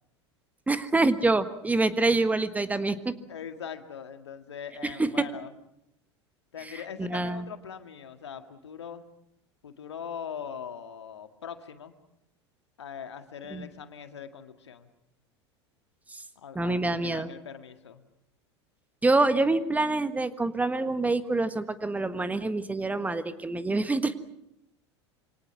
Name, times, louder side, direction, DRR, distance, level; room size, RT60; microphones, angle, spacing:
voice 1, 0.7-3.1 5.0-5.1 7.0-7.4 13.5-13.7 16.1-16.2 16.5-17.3 19.0-24.1, right 2 dB, 10° right, 12 dB, 1.4 m, -26 dB
voice 2, 3.3-5.5 6.5-9.0 9.6-11.9 12.8-14.9 16.4-18.1, left 7 dB, 70° left, 8 dB, 1.9 m, -41 dB
27.0 x 25.0 x 6.0 m, 0.81 s
figure-of-eight pair, 80°, 15 cm